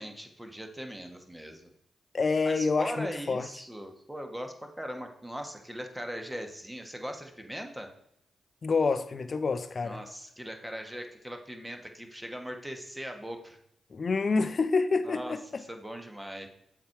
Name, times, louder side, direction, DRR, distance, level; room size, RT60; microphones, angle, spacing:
voice 1, 0.0-1.7 2.4-7.9 9.8-13.6 15.0-16.5, equal, 10° right, 1.3 m, -40 dB
voice 2, 2.1-3.5 8.6-10.0 13.9-15.6, left 4 dB, 45° left, 0.6 m, -27 dB
7.2 x 4.6 x 4.7 m
supercardioid pair, 55°, 0 cm